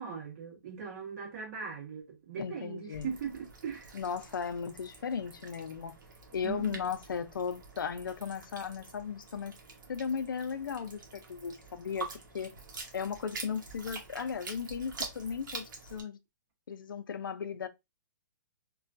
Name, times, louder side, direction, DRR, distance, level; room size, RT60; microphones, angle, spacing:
voice 1, 0.0-4.0 6.4-6.8, right 6 dB, 50° right, 1.4 m, -40 dB
voice 2, 2.4-3.1 3.9-6.0 6.3-9.5 9.9-12.1 12.3-12.5 12.9-16.2 16.7-17.7, left 6 dB, 85° left, 0.5 m, -36 dB
sound 1, 2.9-16.0, right 4 dB, 70° right, 1.1 m, -46 dB
3.0 x 2.3 x 2.5 m
hypercardioid pair, 150°, 11 cm